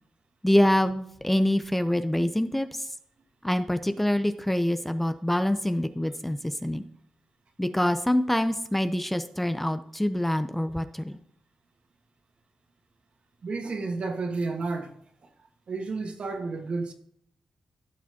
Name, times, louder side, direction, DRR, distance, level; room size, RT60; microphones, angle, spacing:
voice 1, 0.4-2.9 3.4-6.8 7.6-11.2, left 1 dB, 5° left, 0.6 m, -25 dB
voice 2, 13.4-14.9 15.7-16.9, right 3 dB, 60° right, 1.5 m, -31 dB
15.0 x 6.0 x 2.8 m
cardioid pair, 65°, 2 cm